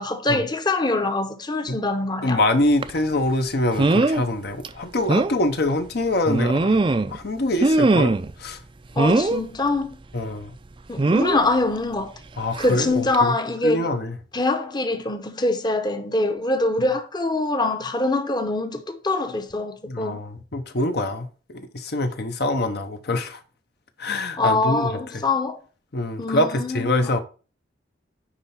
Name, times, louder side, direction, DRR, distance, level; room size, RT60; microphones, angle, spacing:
voice 1, 0.0-2.4 9.0-9.9 10.9-12.1 12.6-13.8 14.3-20.2 24.4-25.6 26.2-27.1, left 2 dB, 25° left, 0.8 m, -24 dB
voice 2, 2.2-6.8 7.1-8.6 10.1-10.6 12.4-13.3 13.6-14.2 19.9-23.4 24.0-25.2 25.9-27.2, left 1 dB, 65° left, 0.9 m, -25 dB
sound 1, 2.8-3.0 3.8-4.2 4.6-4.7 5.1-5.3 6.3-7.2 7.6-8.3 9.0-9.4 11.0-11.4 12.6-12.8 13.1-13.2, right 2 dB, 30° right, 0.4 m, -20 dB
9.8 x 3.4 x 5.7 m
head